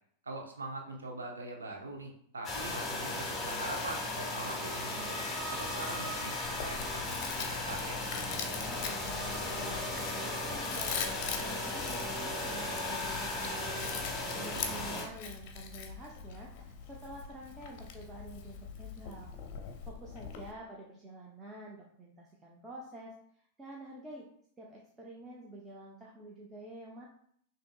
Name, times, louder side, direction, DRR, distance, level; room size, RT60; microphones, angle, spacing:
voice 1, 0.3-5.2 5.5-6.3 6.6-6.8 7.1-8.0 14.5-14.8, right 2 dB, 75° right, 2 dB, 0.8 m, -42 dB
sound 1, 2.4-15.0, left 2 dB, 15° left, 1.3 m, -36 dB
Chewing mastication, 6.4-20.5, left 7 dB, 45° left, 0.6 m, -43 dB
voice 2, 8.5-13.8 14.3-19.3 19.9-24.3 24.6-27.2, right 1 dB, 15° right, -3 dB, 0.7 m, -48 dB
6.0 x 2.8 x 2.2 m, 0.65 s
figure-of-eight pair, 90°, 0 cm